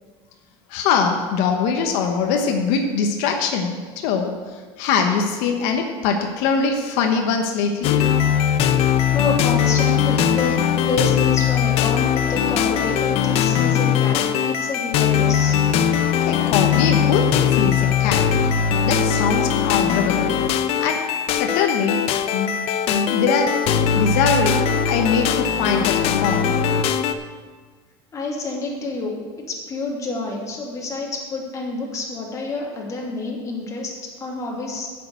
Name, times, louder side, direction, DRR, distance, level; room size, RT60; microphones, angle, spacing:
voice 1, 0.7-4.3 4.8-8.0 16.2-18.3 18.9-20.3 20.8-21.0 21.4-22.5 22.9-23.6 23.9-26.5, left 5 dB, 80° left, 3 dB, 1.1 m, -22 dB
sound 1, 7.8-27.1, left 8 dB, 60° left, 0.7 m, -20 dB
voice 2, 9.1-15.6 28.1-33.9 34.2-34.9, left 2 dB, 25° left, -2 dB, 2.6 m, -28 dB
8.6 x 6.7 x 8.3 m, 1.5 s
cardioid pair, 140°, 12 cm